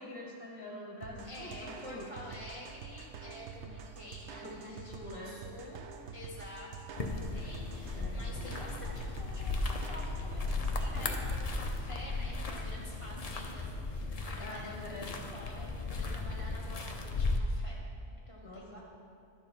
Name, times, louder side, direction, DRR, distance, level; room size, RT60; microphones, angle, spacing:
voice 1, 0.0-2.1 4.4-5.4 7.9-8.3 14.4-15.1 18.4-18.8, left 2 dB, 20° left, -3 dB, 1.6 m, -45 dB
sound 1, 1.0-11.4, right 6 dB, 70° right, 1.0 m, -47 dB
voice 2, 1.2-5.8 6.1-10.4 10.8-17.8 18.3-18.8, equal, 30° right, -5 dB, 1.1 m, -49 dB
sound 2, 7.0-17.4, left 3 dB, 40° left, 0.7 m, -36 dB
11.5 x 6.9 x 5.4 m, 2.3 s
omnidirectional pair, 1.2 m